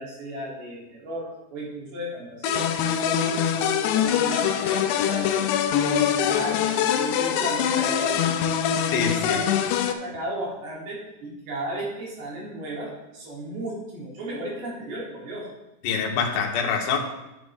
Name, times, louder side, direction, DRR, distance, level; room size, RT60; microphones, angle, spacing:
voice 1, 0.0-5.5 5.8-8.4 8.7-15.5, right 1 dB, 60° right, -5 dB, 4.9 m, -35 dB
sound 1, 2.4-9.9, left 9 dB, 85° left, 2.7 m, -23 dB
voice 2, 8.9-9.4 15.8-17.0, left 6 dB, 65° left, 0 dB, 2.7 m, -25 dB
10.5 x 10.0 x 3.6 m, 0.95 s
omnidirectional pair, 5.2 m